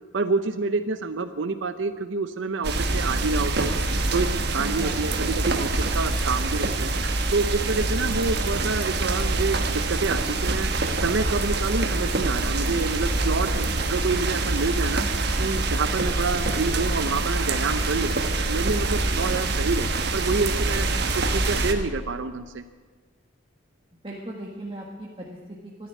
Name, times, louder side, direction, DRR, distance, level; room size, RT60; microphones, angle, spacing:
voice 1, 0.1-3.7 4.1-6.9 7.3-10.7 10.9-15.0 15.4-18.1 18.5-20.9 21.1-22.6, right 4 dB, 75° right, 9 dB, 0.7 m, -27 dB
sound 1, 2.6-21.7, right 2 dB, 55° right, 1.3 m, -25 dB
voice 2, 4.6-5.2 24.0-25.9, right 1 dB, 30° right, -3 dB, 1.5 m, -37 dB
13.5 x 10.5 x 9.4 m, 1.4 s
head